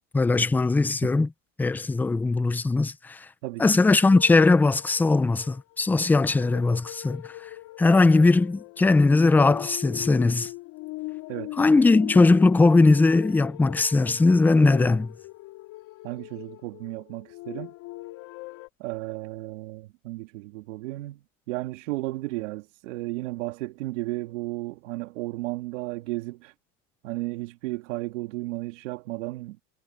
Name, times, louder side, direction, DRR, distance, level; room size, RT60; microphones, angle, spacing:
voice 1, 0.1-1.3 1.6-3.3 3.6-7.2 7.8-10.5 11.6-15.1, left 3 dB, 5° left, 0.4 m, -20 dB
sound 1, 4.0-18.7, left 20 dB, 55° left, 3.1 m, -41 dB
voice 2, 16.0-17.7 18.8-26.5 27.0-29.6, right 20 dB, 75° right, 1.9 m, -34 dB
supercardioid pair, 130°, 37 cm